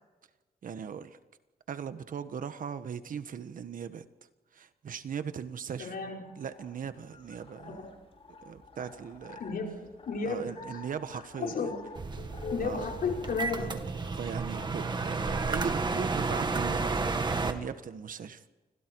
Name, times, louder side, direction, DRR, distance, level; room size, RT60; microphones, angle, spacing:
voice 1, 0.6-1.2 1.7-4.0 4.5-5.9 6.4-7.9 8.4-9.4 10.2-11.7 12.6-12.8 13.6-13.8 14.1-18.4, right 7 dB, 60° right, 11 dB, 1.4 m, -39 dB
voice 2, 5.8-6.2 7.7-7.9 9.4-10.8 11.1-11.8 12.3-13.7, left 5 dB, 70° left, 0 dB, 5.5 m, -34 dB
sound 1, 6.2-15.9, left 3 dB, 40° left, 5.5 m, -51 dB
sound 2, 12.0-17.5, right 4 dB, 30° right, 2.0 m, -32 dB
29.5 x 25.5 x 4.7 m, 1.2 s
wide cardioid pair, 140°, 16 cm